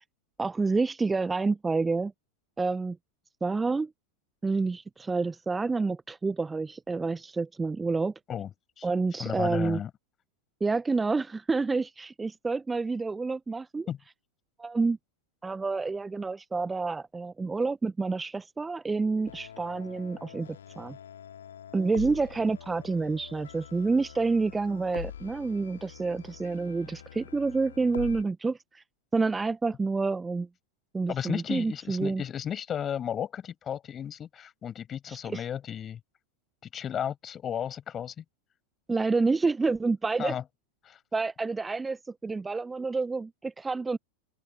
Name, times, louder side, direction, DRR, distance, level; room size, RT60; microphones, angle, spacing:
voice 1, 0.4-2.1 2.6-3.0 3.4-3.9 4.4-8.1 8.8-9.8 10.6-13.9 14.6-15.0 15.4-20.5 20.8-21.0 21.7-28.8 29.1-30.5 30.9-32.2 35.1-35.4 38.9-40.4 41.1-44.0, right 4 dB, 10° right, 0.9 m, -28 dB
voice 2, 9.2-9.9 13.9-14.0 31.1-36.0 36.6-38.2 40.2-40.4 40.8-41.0, left 9 dB, 25° left, 7.1 m, -34 dB
sound 1, 19.2-28.2, left 9 dB, 65° left, 3.1 m, -45 dB
open air
figure-of-eight pair, 90°, 0 cm